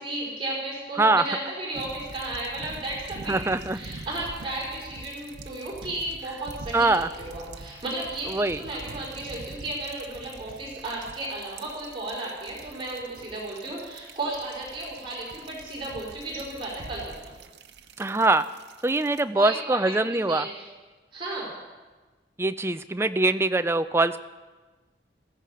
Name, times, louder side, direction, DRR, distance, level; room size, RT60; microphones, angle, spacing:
voice 1, 0.0-17.3 19.3-20.7 21.1-21.5, right 2 dB, 30° right, -5 dB, 4.5 m, -34 dB
sound 1, 1.7-19.2, right 2 dB, 90° right, 0.9 m, -45 dB
voice 2, 3.3-3.8 6.7-7.1 8.3-8.6 18.0-18.4 18.8-20.5 22.4-24.2, right 2 dB, 15° right, 11 dB, 0.4 m, -23 dB
16.5 x 15.0 x 4.9 m, 1.3 s
head